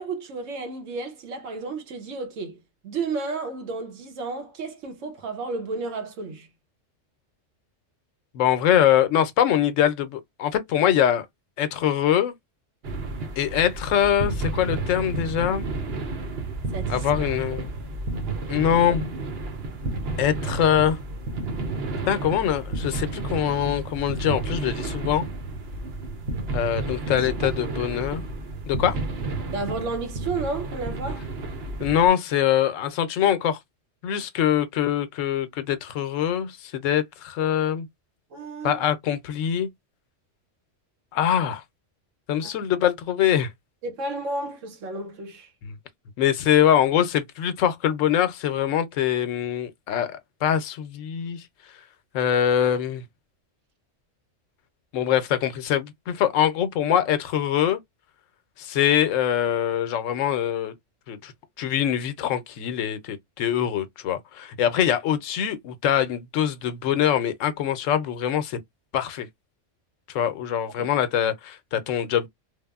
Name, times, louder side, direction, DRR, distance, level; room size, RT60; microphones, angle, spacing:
voice 1, 0.0-6.5 16.7-17.1 17.5-17.7 29.5-31.3 38.3-38.8 42.4-42.5 43.8-45.5 70.8-70.9, right 3 dB, 90° right, 1.1 m, -32 dB
voice 2, 8.3-11.3 11.6-12.3 13.4-15.7 16.9-17.7 18.5-19.1 20.2-21.0 22.1-25.3 26.5-28.2 28.7-29.0 31.8-33.6 34.0-37.9 38.6-39.7 41.1-41.6 42.3-43.5 45.6-45.8 46.2-51.4 52.1-53.0 54.9-57.8 58.6-60.7 61.1-61.3 61.6-68.6 68.9-69.3 70.1-72.3, left 10 dB, 90° left, 0.9 m, -23 dB
sound 1, 12.8-32.1, right 3 dB, 60° right, 0.9 m, -31 dB
3.2 x 2.0 x 2.3 m
omnidirectional pair, 1.3 m